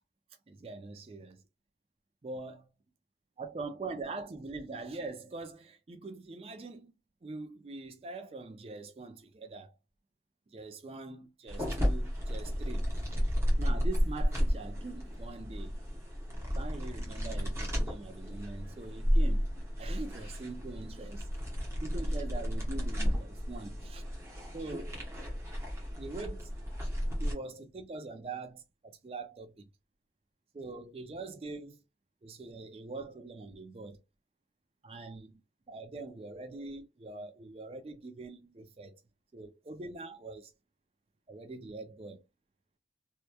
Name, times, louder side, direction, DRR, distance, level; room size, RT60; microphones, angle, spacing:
voice 1, 0.5-1.4 2.2-2.7 3.4-6.9 7.2-9.7 10.5-13.1 13.6-15.8 16.5-19.5 19.8-21.3 21.8-24.0 24.5-25.0 26.0-26.5 27.2-29.7 30.5-31.8 32.2-34.0 34.8-35.4 35.7-39.0 39.3-40.5 41.3-42.2, right 3 dB, 35° right, 0.4 m, -43 dB
sound 1, 11.5-27.3, equal, 15° right, 0.8 m, -32 dB
2.9 x 2.2 x 2.2 m
head